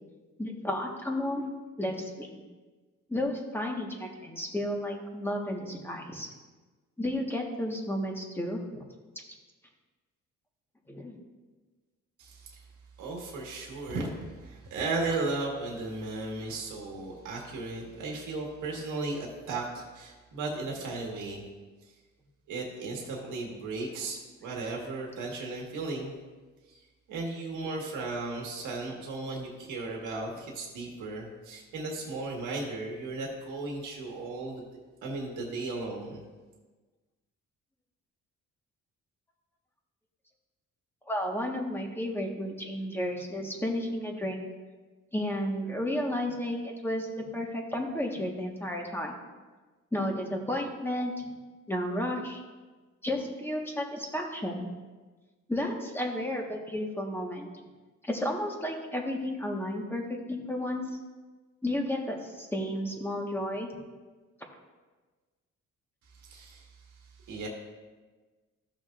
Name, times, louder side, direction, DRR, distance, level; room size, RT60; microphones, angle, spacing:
voice 1, 0.4-1.5 1.8-2.3 3.1-6.3 7.0-8.8 10.9-11.2 41.1-44.5 45.1-49.2 49.9-51.2 51.7-52.4 53.0-54.7 55.5-57.5 58.1-60.0 60.3-60.8 61.6-63.7, left 1 dB, 5° left, 0 dB, 1.5 m, -32 dB
voice 2, 12.2-12.6 13.0-21.4 22.5-26.1 26.7-26.8 27.1-34.7 35.0-36.2 66.2-66.7 67.3-67.5, right 3 dB, 85° right, -1 dB, 1.7 m, -35 dB
14.5 x 6.1 x 2.6 m, 1.3 s
cardioid pair, 90°, 30 cm